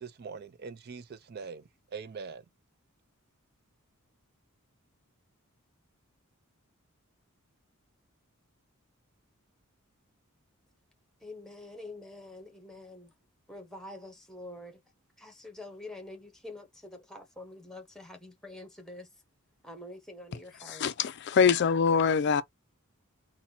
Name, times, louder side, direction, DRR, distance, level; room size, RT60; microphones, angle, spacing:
voice 1, 0.0-1.6 1.9-2.4, right 5 dB, 45° right, 0.4 m, -42 dB
voice 2, 11.2-13.1 13.5-14.8 15.2-19.1 19.6-20.9, left 2 dB, ahead, 0.9 m, -46 dB
voice 3, 20.7-22.4, left 6 dB, 50° left, 0.4 m, -24 dB
4.1 x 2.2 x 4.2 m
head